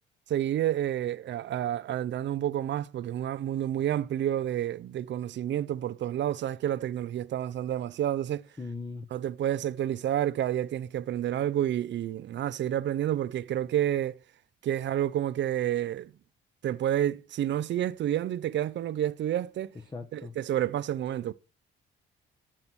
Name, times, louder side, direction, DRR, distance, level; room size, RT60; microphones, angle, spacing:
voice 1, 0.3-8.4 9.1-14.2 14.6-16.1 16.6-19.7 20.1-21.3, right 11 dB, 65° right, 0.7 m, -29 dB
voice 2, 8.6-9.1 19.9-20.3, left 3 dB, 20° left, 1.2 m, -39 dB
9.0 x 7.7 x 6.2 m
cardioid pair, 90°, 20 cm